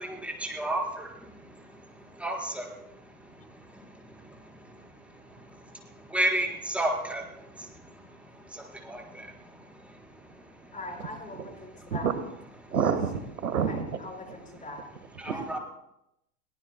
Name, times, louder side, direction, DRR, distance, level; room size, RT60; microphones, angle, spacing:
voice 1, 0.0-1.5 2.1-2.7 3.7-4.4 5.3-5.6 6.1-7.7 8.3-9.4 9.7-9.9 11.8-11.9 15.2-15.6, right 1 dB, 5° right, -1 dB, 4.4 m, -33 dB
voice 2, 10.7-12.1 13.6-14.8 15.2-15.4, left 2 dB, 15° left, 2 dB, 5.3 m, -41 dB
voice 3, 12.7-13.9 15.3-15.4, right 7 dB, 85° right, 10 dB, 1.6 m, -27 dB
23.0 x 18.0 x 2.2 m, 0.84 s
hypercardioid pair, 100°, 44 cm